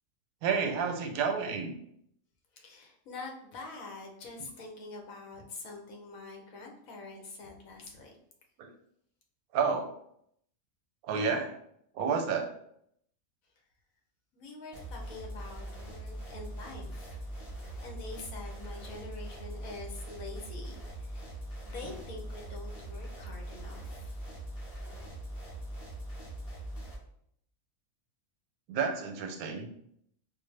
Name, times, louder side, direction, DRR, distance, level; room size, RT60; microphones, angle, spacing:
voice 1, 0.4-1.7 8.6-8.7 9.5-9.9 11.0-11.6 12.0-12.5 28.7-29.7, right 5 dB, 90° right, 5 dB, 1.1 m, -30 dB
voice 2, 2.5-8.2 14.3-17.2 17.8-21.3 21.6-24.2, left 3 dB, 75° left, 1 dB, 1.2 m, -45 dB
sound 1, 14.7-27.0, right 1 dB, 30° left, 1.5 m, -42 dB
4.6 x 2.1 x 3.2 m, 0.71 s
omnidirectional pair, 1.5 m